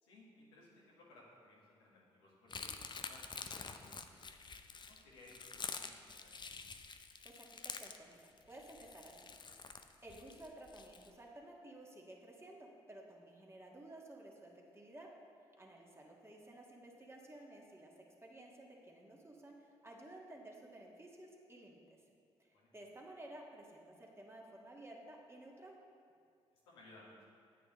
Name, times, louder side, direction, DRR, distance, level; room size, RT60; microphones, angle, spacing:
voice 1, 0.0-4.3 4.8-6.4 22.5-22.7 26.6-27.3, left 2 dB, 85° left, -6 dB, 1.6 m, -61 dB
sound 1, 2.5-11.1, left 5 dB, 35° left, 0.6 m, -48 dB
voice 2, 7.2-8.2 8.5-9.2 10.0-15.1 15.6-22.0 22.4-25.8, right 1 dB, 20° right, -2 dB, 1.8 m, -54 dB
9.4 x 8.1 x 3.2 m, 2.3 s
hypercardioid pair, 40°, 13 cm